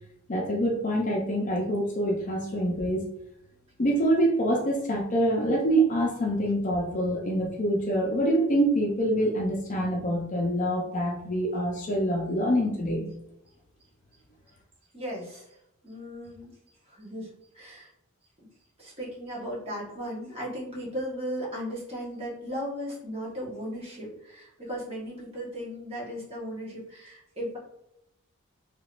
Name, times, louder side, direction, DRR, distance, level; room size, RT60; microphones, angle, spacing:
voice 1, 0.3-3.1 3.8-13.1, right 1 dB, 35° left, -1 dB, 0.6 m, -25 dB
voice 2, 14.9-15.5 15.8-16.5 16.9-17.3 17.5-17.9 18.8-27.6, equal, 30° right, -6 dB, 1.2 m, -36 dB
3.4 x 2.9 x 2.5 m, 0.83 s
head